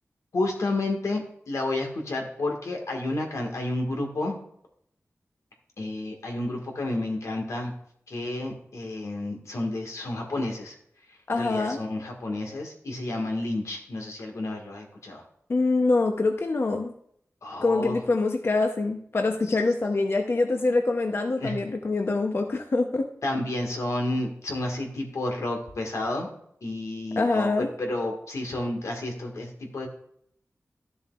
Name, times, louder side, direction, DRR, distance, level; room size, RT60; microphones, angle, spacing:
voice 1, 0.3-4.4 5.8-7.7 8.1-10.8 11.4-15.2 17.4-18.0 21.4-21.6 23.2-26.3 26.6-29.9, left 2 dB, 85° left, 2 dB, 1.7 m, -30 dB
voice 2, 11.3-11.8 15.5-16.9 17.6-23.1 27.2-27.7, left 3 dB, 50° left, 4 dB, 0.7 m, -25 dB
12.5 x 7.1 x 2.4 m, 0.68 s
wide cardioid pair, 95°, 5 cm